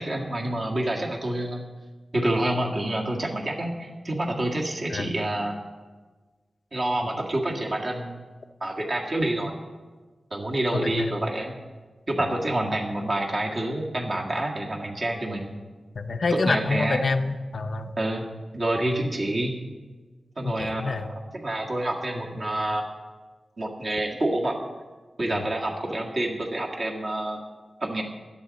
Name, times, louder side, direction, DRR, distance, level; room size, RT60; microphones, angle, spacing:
voice 1, 0.0-1.6 2.1-5.6 6.7-8.2 8.6-9.6 10.3-11.6 12.1-15.5 16.3-17.0 18.0-18.3 18.5-19.5 20.4-22.9 23.6-24.6 25.2-27.4 27.8-28.0, right 1 dB, 45° right, -1 dB, 1.8 m, -27 dB
voice 2, 10.7-11.2 16.0-17.9 20.4-21.1 25.3-25.5, left 3 dB, 55° left, 8 dB, 0.7 m, -27 dB
16.0 x 11.5 x 4.1 m, 1.3 s
wide cardioid pair, 140°, 0 cm